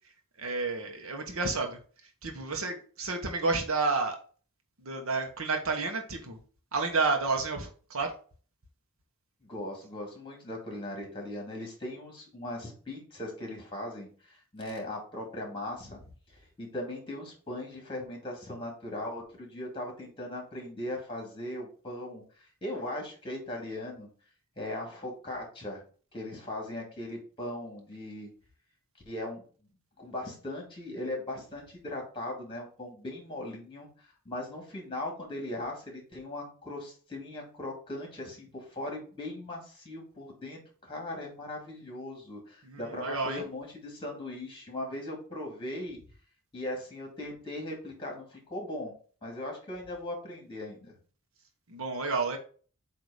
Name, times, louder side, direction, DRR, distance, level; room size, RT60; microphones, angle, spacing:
voice 1, 0.4-1.8 2.2-4.2 4.8-6.4 6.7-8.1 42.6-43.4 51.7-52.4, right 3 dB, 70° right, 3 dB, 1.1 m, -30 dB
voice 2, 9.4-16.0 16.3-24.1 24.6-25.8 26.1-28.3 29.1-29.4 30.0-46.0 46.5-48.9 49.2-50.9, left 1 dB, 25° left, 1 dB, 2.4 m, -39 dB
8.2 x 2.8 x 4.9 m, 0.41 s
head